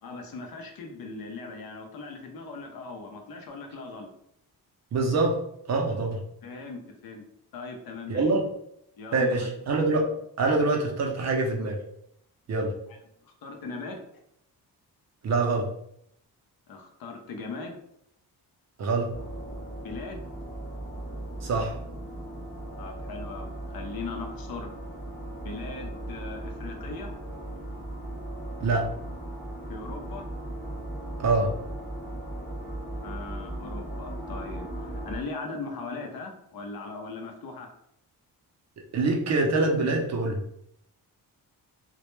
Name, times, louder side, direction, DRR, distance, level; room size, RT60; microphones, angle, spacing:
voice 1, 0.0-4.1 6.4-7.3 7.5-8.2 9.0-9.5 13.2-14.0 16.7-17.8 19.8-20.3 22.8-24.7 25.4-27.1 29.7-30.3 33.0-37.7, left 4 dB, 65° left, 3 dB, 0.6 m, -39 dB
voice 2, 4.9-5.4 5.7-6.2 8.1-8.4 9.1-10.1 10.4-11.8 12.5-12.7 15.2-15.7 18.8-19.1 21.4-21.7 28.6-28.9 31.2-31.5 38.9-40.4, right 3 dB, 45° right, 2 dB, 0.4 m, -25 dB
sound 1, 19.1-35.2, right 1 dB, 30° left, 0.7 m, -37 dB
2.1 x 2.1 x 3.0 m, 0.73 s
wide cardioid pair, 130°, 39 cm